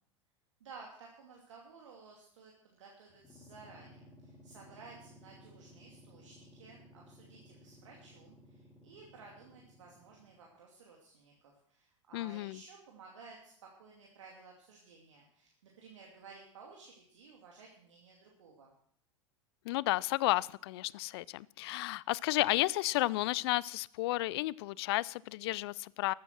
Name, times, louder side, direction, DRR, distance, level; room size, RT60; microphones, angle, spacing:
voice 1, 0.6-18.7, right 4 dB, 70° right, 2.6 m, -55 dB
sound 1, 3.1-10.5, left 1 dB, 20° left, 3.2 m, -58 dB
voice 2, 12.1-12.6 19.7-26.1, left 19 dB, 55° left, 0.4 m, -32 dB
14.0 x 9.6 x 6.1 m
figure-of-eight pair, 85°, 16 cm